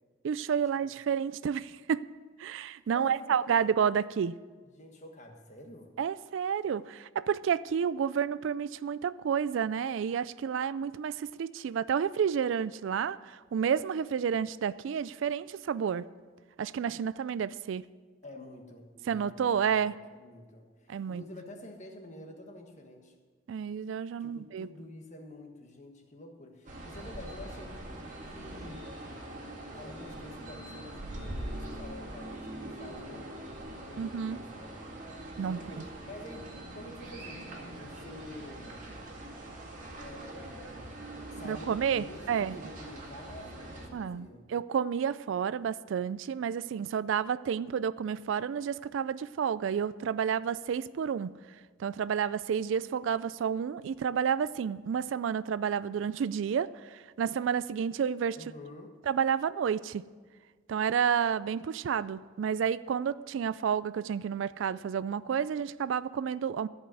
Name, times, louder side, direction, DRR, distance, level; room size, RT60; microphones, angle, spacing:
voice 1, 0.2-2.1 2.4-4.4 6.0-16.0 16.6-17.9 19.1-20.0 20.9-21.2 23.5-24.7 34.0-34.4 35.4-35.6 41.4-42.6 43.9-51.3 51.8-58.4 59.1-60.0 60.7-66.7, right 7 dB, 70° right, 16 dB, 0.3 m, -30 dB
voice 2, 2.9-3.9 4.7-5.9 18.2-19.7 20.1-23.1 24.2-28.9 29.7-33.5 33.7-34.9 35.5-38.9 40.0-40.9 41.3-44.5 58.4-59.0, left 1 dB, 35° left, 3 dB, 1.4 m, -48 dB
sound 1, 26.7-43.9, right 1 dB, 40° right, 2.0 m, -43 dB
14.5 x 5.4 x 8.4 m, 1.5 s
head